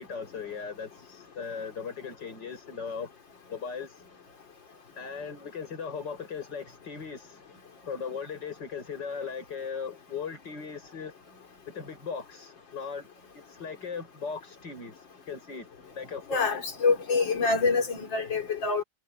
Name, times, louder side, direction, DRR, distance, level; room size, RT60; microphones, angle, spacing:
voice 1, 0.0-3.1 3.5-4.0 5.0-7.4 7.9-11.1 11.7-13.1 13.3-15.7 16.0-16.6, left 6 dB, 70° left, 5.8 m, -38 dB
voice 2, 16.3-18.8, left 4 dB, 85° left, 3.7 m, -26 dB
omnidirectional pair, 2.0 m